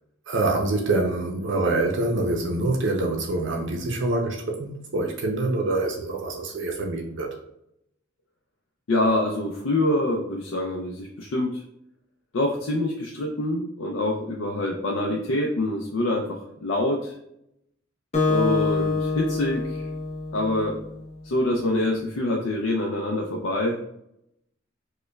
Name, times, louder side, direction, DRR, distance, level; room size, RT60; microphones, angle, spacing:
voice 1, 0.3-7.3, right 2 dB, 65° right, 1 dB, 0.5 m, -25 dB
voice 2, 8.9-11.6 12.3-17.2 18.3-19.9 20.3-20.7 21.2-23.8, left 1 dB, 75° left, -1 dB, 0.5 m, -25 dB
Acoustic guitar, 18.1-20.9, left 4 dB, 35° left, 0.7 m, -26 dB
5.1 x 2.2 x 2.2 m, 0.78 s
head